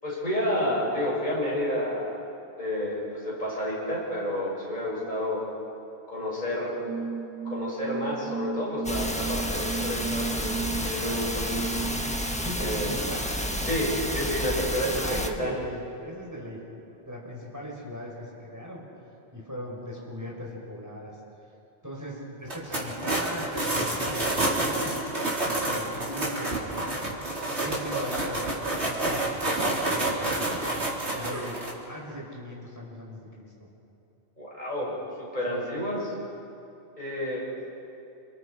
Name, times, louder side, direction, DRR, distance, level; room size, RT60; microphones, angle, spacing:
voice 1, 0.0-2.2 2.6-5.4 6.1-6.7 7.4-10.6 10.8-11.8 12.6-13.0 13.6-15.5 34.4-34.9 35.2-36.1 37.0-37.4, left 1 dB, 40° left, -6 dB, 7.5 m, -30 dB
sound 1, 6.8-13.9, right 5 dB, 40° right, 4.0 m, -35 dB
sound 2, 8.8-15.3, equal, 5° left, 1.5 m, -30 dB
voice 2, 12.4-13.3 14.9-16.6 17.0-18.9 19.3-21.2 21.8-24.9 25.5-27.0 27.5-30.3 31.1-31.6 31.8-33.7 35.5-35.9, equal, 15° right, -3 dB, 4.9 m, -39 dB
sound 3, 22.4-31.7, right 2 dB, 80° right, 4.1 m, -29 dB
30.0 x 29.0 x 5.0 m, 2.8 s
omnidirectional pair, 1.1 m